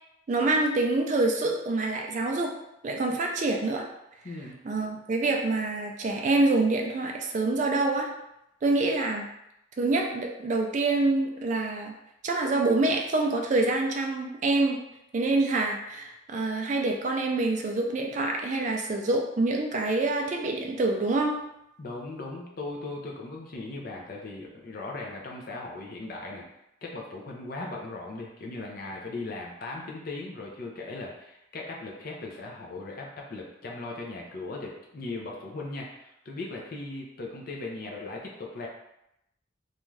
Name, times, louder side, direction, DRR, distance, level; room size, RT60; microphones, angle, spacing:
voice 1, 0.3-2.5 2.8-3.8 4.6-8.1 8.6-9.3 9.8-11.9 12.2-14.8 15.1-21.3, right 2 dB, 35° right, 1 dB, 0.3 m, -26 dB
voice 2, 4.2-4.6 21.8-26.4 26.8-38.7, left 2 dB, 45° left, -1 dB, 0.5 m, -38 dB
2.6 x 2.3 x 3.1 m, 0.84 s
head